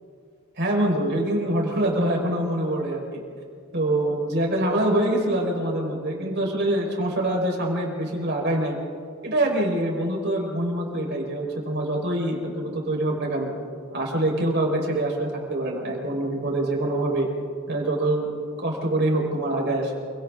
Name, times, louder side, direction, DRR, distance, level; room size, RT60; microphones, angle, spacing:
voice 1, 0.6-3.2 3.7-8.8 9.2-13.5 13.9-17.3 17.7-19.9, right 1 dB, 55° right, 0 dB, 5.3 m, -25 dB
29.0 x 25.0 x 3.9 m, 2.2 s
head